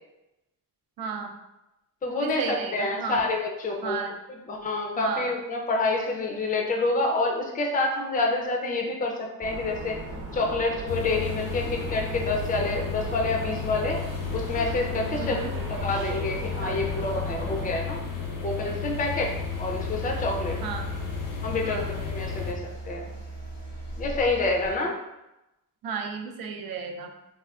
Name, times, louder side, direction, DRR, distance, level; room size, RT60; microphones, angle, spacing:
voice 1, 1.0-1.3 2.1-3.2 3.8-4.2 5.0-5.4 15.2-15.5 20.6-20.9 21.6-22.0 25.8-27.1, right 5 dB, 75° right, 3 dB, 0.5 m, -33 dB
voice 2, 2.0-4.0 4.5-10.0 10.3-14.0 14.3-15.4 15.7-18.0 18.4-20.6 21.4-23.1 24.0-25.0, left 2 dB, 25° left, 1 dB, 0.4 m, -28 dB
sound 1, 9.4-17.7, right 2 dB, 40° right, 0.8 m, -37 dB
sound 2, 10.9-22.5, left 6 dB, 60° left, 0.7 m, -33 dB
sound 3, 18.9-24.7, right 2 dB, 85° left, 1.1 m, -39 dB
3.6 x 2.3 x 2.3 m, 0.94 s
cardioid pair, 100°, 36 cm